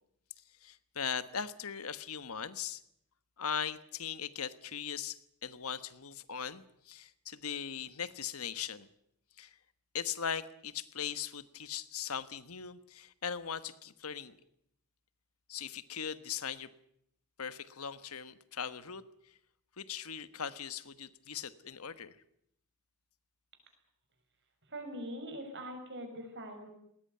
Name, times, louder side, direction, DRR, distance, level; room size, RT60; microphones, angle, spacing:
voice 1, 0.6-2.8 3.4-8.9 9.4-9.6 9.9-14.4 15.5-16.7 17.4-19.3 19.8-22.2, left 7 dB, 80° left, 13 dB, 1.3 m, -39 dB
voice 2, 24.7-26.7, equal, 55° right, 5 dB, 6.2 m, -42 dB
20.0 x 19.5 x 9.5 m, 0.75 s
head